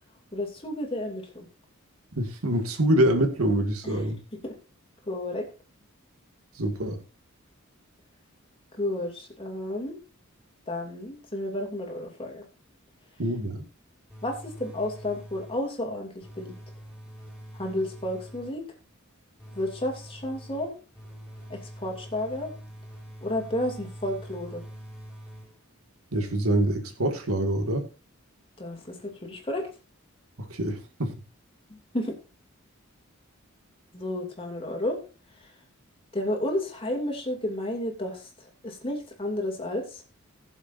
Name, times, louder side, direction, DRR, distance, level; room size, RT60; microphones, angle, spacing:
voice 1, 0.3-1.5 3.8-4.0 5.1-5.5 8.8-10.0 10.7-12.4 14.2-16.5 17.5-18.7 19.5-20.7 21.5-22.5 23.2-24.6 28.6-29.7 31.7-32.1 33.9-35.0 35.4-35.5 36.1-40.0, left 1 dB, 25° left, 2.7 m, -32 dB
voice 2, 2.2-4.2 6.6-7.0 13.2-13.7 26.1-27.9 30.4-31.1, right 1 dB, 85° right, 2.1 m, -25 dB
sound 1, 14.1-15.8 16.2-18.7 19.4-25.8, equal, 5° right, 4.8 m, -44 dB
20.0 x 7.2 x 2.6 m
head